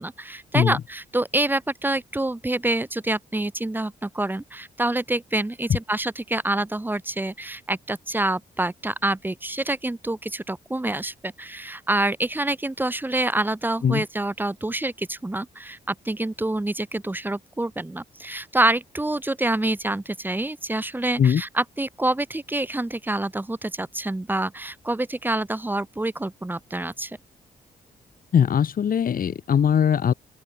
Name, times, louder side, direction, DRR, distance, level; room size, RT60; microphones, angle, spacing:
voice 1, 0.0-27.2, right 2 dB, 10° right, 5.2 m, -27 dB
voice 2, 28.3-30.1, left 8 dB, 60° left, 2.9 m, -20 dB
open air
wide cardioid pair, 130°, 16 cm